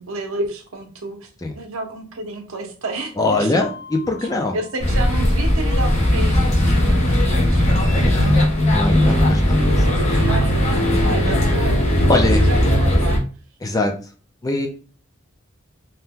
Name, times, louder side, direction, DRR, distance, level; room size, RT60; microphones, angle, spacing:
voice 1, 0.0-1.3 1.5-3.6 4.2-4.3 4.5-7.7 8.9-13.2, right 2 dB, 80° right, 5 dB, 0.7 m, -31 dB
voice 2, 3.2-4.6 7.8-10.1 12.1-12.4 13.6-13.9 14.4-14.7, left 2 dB, 15° left, 3 dB, 0.4 m, -22 dB
Mallet percussion, 3.6-6.2, left 5 dB, 85° left, 0.6 m, -43 dB
sound 1, 4.8-13.2, left 1 dB, 30° left, 0.8 m, -17 dB
2.8 x 2.2 x 3.5 m, 0.38 s
head